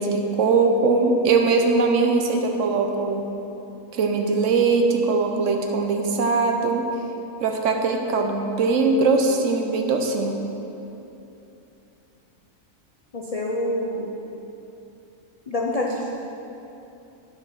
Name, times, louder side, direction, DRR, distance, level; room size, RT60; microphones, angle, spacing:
voice 1, 0.0-3.3 3.9-6.9 7.4-10.4, right 4 dB, 65° right, 3 dB, 1.0 m, -21 dB
voice 2, 13.1-14.1 15.5-16.1, left 1 dB, 70° left, -1 dB, 0.3 m, -26 dB
7.9 x 6.0 x 5.7 m, 2.9 s
omnidirectional pair, 1.5 m